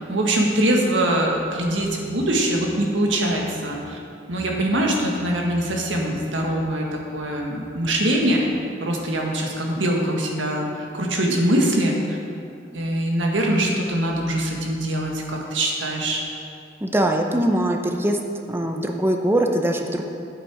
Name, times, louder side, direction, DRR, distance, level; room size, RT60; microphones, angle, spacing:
voice 1, 0.1-4.0 4.3-12.2 12.7-16.2, right 1 dB, 85° right, 0 dB, 1.6 m, -23 dB
voice 2, 16.8-18.2 18.5-20.1, right 1 dB, 10° right, 3 dB, 0.7 m, -22 dB
9.1 x 8.3 x 4.9 m, 2.4 s
head